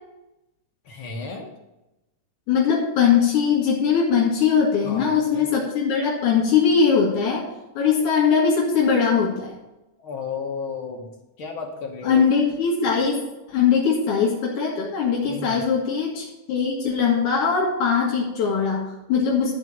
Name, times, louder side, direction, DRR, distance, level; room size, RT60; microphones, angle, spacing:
voice 1, 0.9-1.5 4.8-5.5 10.0-11.1 11.4-12.2 15.3-15.6, left 5 dB, 55° left, 1 dB, 1.8 m, -33 dB
voice 2, 2.5-7.4 7.7-9.5 12.0-19.5, left 6 dB, 80° left, -3 dB, 3.4 m, -21 dB
12.5 x 4.2 x 7.4 m, 0.95 s
omnidirectional pair, 3.4 m